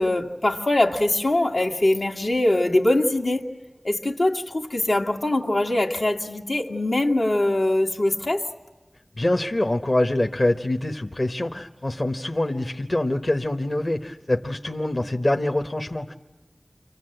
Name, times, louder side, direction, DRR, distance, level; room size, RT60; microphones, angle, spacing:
voice 1, 0.0-3.6 3.8-8.5, left 1 dB, 85° left, 2.0 m, -22 dB
voice 2, 9.2-16.1, left 1 dB, 50° left, 1.0 m, -25 dB
29.5 x 25.0 x 7.9 m
wide cardioid pair, 40°, 0 cm